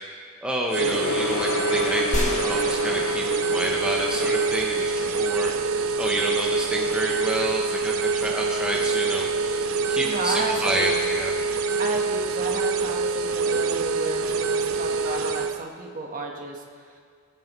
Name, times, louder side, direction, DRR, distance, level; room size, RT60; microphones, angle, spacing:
voice 1, 0.4-3.3 3.5-11.3, right 1 dB, 5° right, -2 dB, 0.8 m, -29 dB
Gong, 0.7-10.5 10.8-11.1 11.4-11.5, left 5 dB, 70° left, 0.5 m, -35 dB
Odd machine, 0.7-15.6, right 4 dB, 90° right, 0.6 m, -25 dB
sound 1, 2.1-5.0, left 1 dB, 35° left, 1.6 m, -32 dB
voice 2, 10.0-11.0 11.8-17.0, right 2 dB, 40° right, 1 dB, 1.3 m, -32 dB
20.5 x 9.2 x 3.1 m, 2.2 s
head